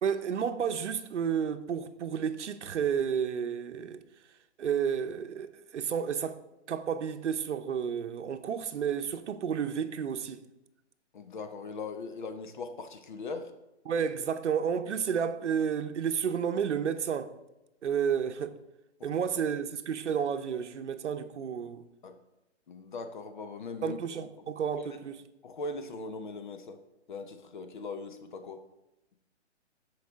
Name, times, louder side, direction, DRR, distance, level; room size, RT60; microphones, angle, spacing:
voice 1, 0.0-4.0 4.6-6.4 6.7-10.4 13.9-17.3 17.8-18.6 19.0-21.8 23.8-25.2, right 7 dB, 75° right, 0.8 m, -31 dB
voice 2, 11.1-13.5 19.0-19.2 22.0-22.2 22.7-24.0 24.7-25.0 25.4-26.8 27.1-28.6, left 3 dB, 45° left, 0.7 m, -40 dB
13.0 x 4.9 x 3.6 m
hypercardioid pair, 160°, 35 cm